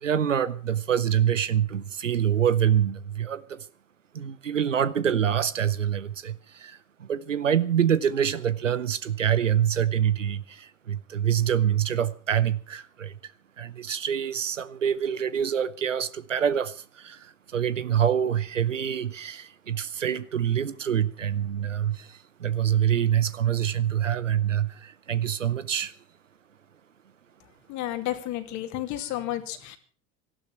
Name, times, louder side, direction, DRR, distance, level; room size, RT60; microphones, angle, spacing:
voice 1, 0.0-3.6 4.1-13.1 13.6-17.3 17.5-25.9, right 9 dB, 90° right, 0.8 m, -26 dB
voice 2, 27.7-29.8, left 13 dB, 50° left, 2.6 m, -32 dB
18.0 x 12.5 x 5.8 m
figure-of-eight pair, 70°, 37 cm